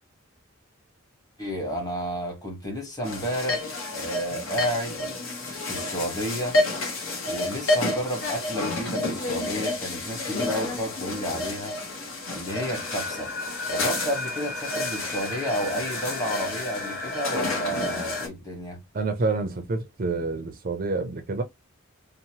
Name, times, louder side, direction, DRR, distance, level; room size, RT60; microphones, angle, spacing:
voice 1, 1.4-5.1 5.7-6.6 7.2-11.8 12.3-13.3 13.7-18.8, equal, 20° left, 1.0 m, -31 dB
sound 1, 3.0-18.3, left 2 dB, 70° left, 1.0 m, -30 dB
sound 2, 12.5-18.3, left 2 dB, 50° left, 1.2 m, -35 dB
voice 2, 18.9-21.4, right 3 dB, 40° right, 0.4 m, -28 dB
2.8 x 2.0 x 2.8 m
head